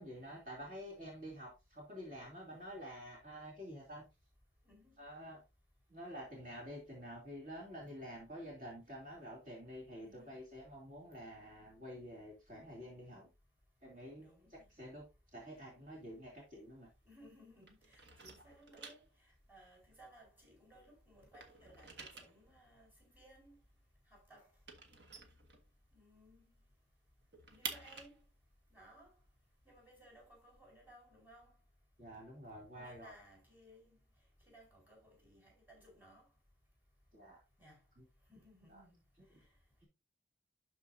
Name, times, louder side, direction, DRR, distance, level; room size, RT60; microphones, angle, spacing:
voice 1, 0.0-4.0 5.0-5.4 5.9-13.3 13.8-14.2 14.5-15.1 15.3-16.9 32.0-33.1 37.1-37.4 38.0-38.1 38.7-38.8, equal, 45° right, 2.9 m, -49 dB
voice 2, 4.6-5.0 10.0-10.4 14.2-14.7 17.1-23.6 24.1-24.5 25.9-26.6 27.5-28.2 28.7-29.1 29.6-31.6 32.7-34.0 34.5-36.3 37.6-37.8 38.3-39.0, equal, 10° right, 4.4 m, -61 dB
sound 1, 15.9-17.3 17.6-20.8 21.1-26.1 26.5-26.6 26.9-30.6, right 4 dB, 60° right, 1.5 m, -51 dB
12.0 x 4.7 x 2.7 m
head